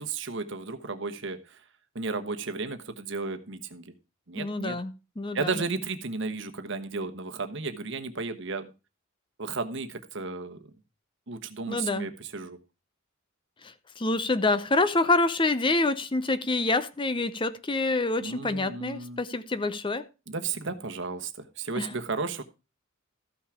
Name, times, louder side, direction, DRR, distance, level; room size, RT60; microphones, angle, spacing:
voice 1, 0.0-1.6 1.9-3.9 4.3-4.8 5.3-8.7 9.4-10.6 11.3-12.6 18.2-19.2 20.3-22.4, right 4 dB, 60° right, 1.2 m, -34 dB
voice 2, 4.4-5.6 11.7-12.1 13.6-20.1 21.8-21.9, left 2 dB, 25° left, 0.7 m, -27 dB
14.0 x 5.9 x 4.9 m
head